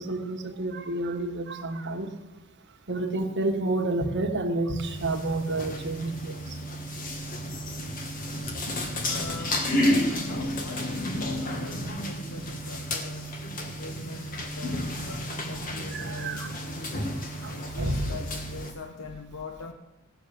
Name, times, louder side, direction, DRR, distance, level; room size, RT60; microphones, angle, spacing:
voice 1, 0.0-2.1 2.9-6.6 15.9-16.5 17.4-18.0, right 2 dB, 55° right, 4 dB, 1.3 m, -30 dB
sound 1, 4.8-18.7, left 1 dB, 40° left, 1.4 m, -31 dB
voice 2, 9.0-19.7, left 3 dB, 65° left, 4 dB, 0.9 m, -42 dB
16.0 x 6.8 x 6.6 m, 1.0 s
head